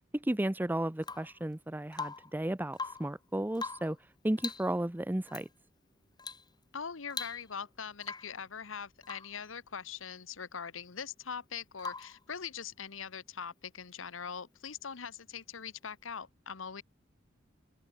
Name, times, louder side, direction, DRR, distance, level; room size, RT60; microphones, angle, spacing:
voice 1, 0.1-4.0 4.2-5.5, right 1 dB, 10° right, 0.6 m, -33 dB
Rain / Water tap faucet / Drip, 1.0-1.4 1.9-2.4 2.7-3.2 3.6-4.0 4.4-4.7 5.3-5.5 6.2-6.5 6.8-6.9 7.1-7.7 8.0-8.4 9.0-9.4 11.8-12.2 14.1-14.2, left 4 dB, 20° left, 2.3 m, -41 dB
voice 2, 6.7-16.8, left 6 dB, 80° left, 1.1 m, -42 dB
head